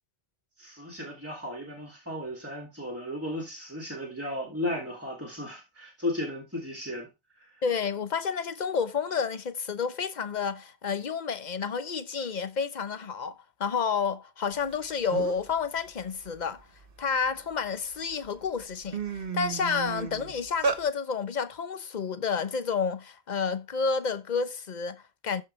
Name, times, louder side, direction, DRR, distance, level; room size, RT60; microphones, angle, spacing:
voice 1, 0.6-7.1, left 1 dB, 15° right, 2.9 m, -35 dB
voice 2, 7.6-16.7 17.0-25.4, left 5 dB, 45° left, 1.0 m, -30 dB
sound 1, 14.7-14.8 15.1-15.5 16.0-17.5 18.1-18.3 18.6-20.8, right 5 dB, 60° right, 1.4 m, -33 dB
14.0 x 5.2 x 3.3 m
omnidirectional pair, 1.0 m